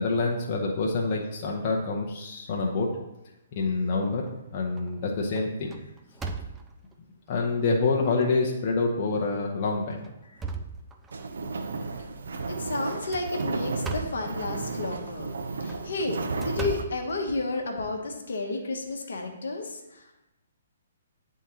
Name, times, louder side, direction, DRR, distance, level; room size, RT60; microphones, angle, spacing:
voice 1, 0.0-2.9 3.5-5.7 7.3-10.1, left 3 dB, 35° left, -1 dB, 0.7 m, -27 dB
sound 1, 3.7-4.3 4.8-5.0 5.4-6.9 7.6-7.7 8.2-8.3 9.2-9.4 9.9-11.4 12.9-14.3 15.5-17.7, right 4 dB, 10° right, 0.4 m, -38 dB
sound 2, 11.1-16.8, right 3 dB, 65° right, 0.6 m, -33 dB
voice 2, 12.5-15.3 15.6-20.3, left 3 dB, 65° left, 2 dB, 0.9 m, -32 dB
9.0 x 3.7 x 2.9 m, 0.92 s
figure-of-eight pair, 125°, 0 cm